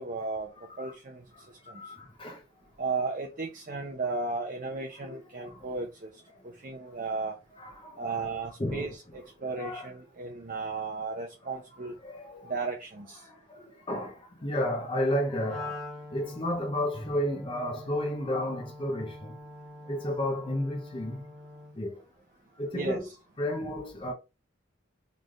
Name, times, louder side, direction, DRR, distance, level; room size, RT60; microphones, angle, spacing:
voice 1, 0.0-0.5 0.8-1.3 1.6-1.9 2.8-6.1 6.4-7.4 8.0-11.9 12.4-13.3 22.7-23.0, right 3 dB, 40° right, 0.6 m, -35 dB
voice 2, 0.6-0.9 1.3-2.4 5.0-5.7 6.4-6.5 7.6-8.3 8.6-9.9 11.8-12.7 13.2-19.3 19.8-21.2 21.7-22.0 22.6-23.1 23.4-24.1, left 1 dB, 25° left, 0.7 m, -33 dB
Wind instrument woodwind instrument, 15.5-21.8, left 2 dB, ahead, 1.3 m, -45 dB
3.9 x 3.3 x 2.4 m
head